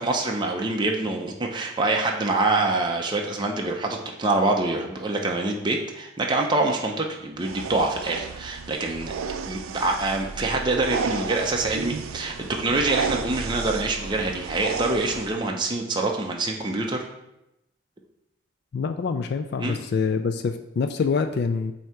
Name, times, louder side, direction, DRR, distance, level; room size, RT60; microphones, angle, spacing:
voice 1, 0.0-9.1 9.4-17.0 19.6-19.8, right 2 dB, 20° right, 1 dB, 0.5 m, -25 dB
sound 1, 7.4-15.4, right 5 dB, 90° right, 0.4 m, -33 dB
voice 2, 18.7-21.7, left 5 dB, 50° left, 7 dB, 0.3 m, -25 dB
7.7 x 2.8 x 4.6 m, 0.88 s
head